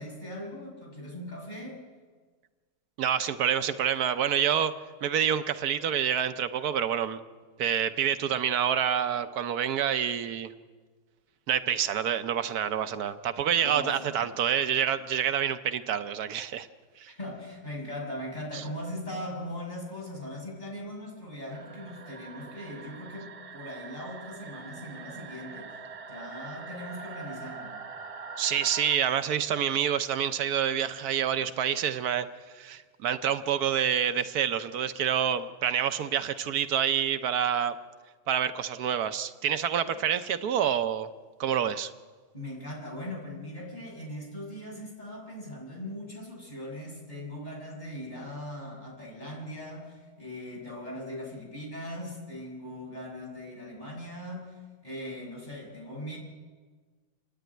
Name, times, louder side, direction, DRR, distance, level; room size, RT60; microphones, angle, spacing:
voice 1, 0.0-1.8 13.6-14.3 17.1-25.8 26.1-27.8 42.3-56.2, left 1 dB, 30° left, -3 dB, 6.2 m, -40 dB
voice 2, 3.0-4.7 5.0-7.2 7.6-10.5 11.5-16.7 17.0-17.1 18.5-18.6 28.4-32.3 32.5-37.8 38.3-41.1 41.4-41.9, right 9 dB, 85° right, 11 dB, 1.3 m, -27 dB
sound 1, 21.5-29.0, right 5 dB, 65° right, 0.3 m, -43 dB
29.0 x 10.0 x 9.3 m, 1.5 s
omnidirectional pair, 1.6 m